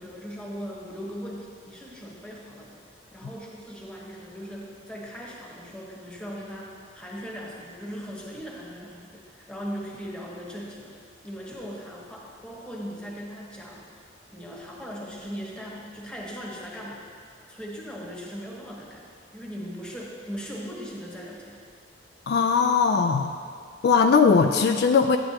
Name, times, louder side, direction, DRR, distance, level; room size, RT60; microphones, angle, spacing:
voice 1, 0.0-2.8 3.1-11.0 11.2-13.9 14.3-17.1 17.5-19.0 19.3-21.6, equal, 5° left, -3 dB, 1.2 m, -39 dB
voice 2, 22.3-23.3 23.8-25.2, left 5 dB, 60° left, 6 dB, 0.3 m, -19 dB
9.8 x 9.7 x 2.9 m, 2.1 s
head